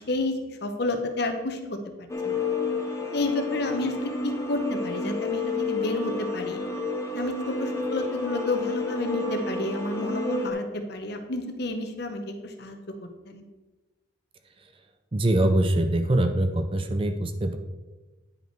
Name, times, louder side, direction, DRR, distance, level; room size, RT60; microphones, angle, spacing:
voice 1, 0.0-1.8 2.2-2.5 3.1-6.6 7.1-12.8 13.2-13.4, left 2 dB, 50° left, 6 dB, 0.9 m, -30 dB
sound 1, 2.1-10.5, left 3 dB, 15° left, 0.7 m, -30 dB
voice 2, 15.1-17.6, right 1 dB, 25° right, 8 dB, 0.5 m, -23 dB
9.8 x 5.4 x 4.5 m, 1.2 s
head